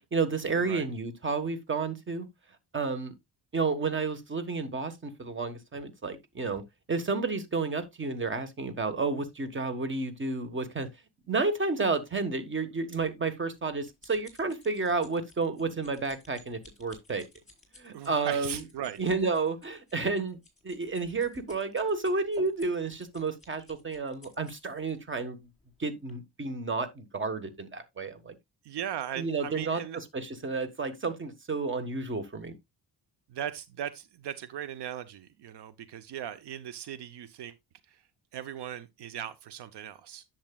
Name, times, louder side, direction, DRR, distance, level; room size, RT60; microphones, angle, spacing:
voice 1, 0.0-2.3 2.7-3.1 3.5-6.6 6.9-10.9 11.3-17.3 17.8-18.6 19.0-25.4 25.8-28.4 29.2-32.5, right 4 dB, 30° right, 1.4 m, -31 dB
sound 1, 13.3-24.9 25.6-25.8 26.1-26.2, left 2 dB, 20° left, 4.2 m, -57 dB
voice 2, 17.9-19.0 28.6-30.0 33.3-37.5 37.9-38.0 38.3-40.2, right 10 dB, 80° right, 0.8 m, -38 dB
10.5 x 7.4 x 2.3 m
cardioid pair, 115°, 40 cm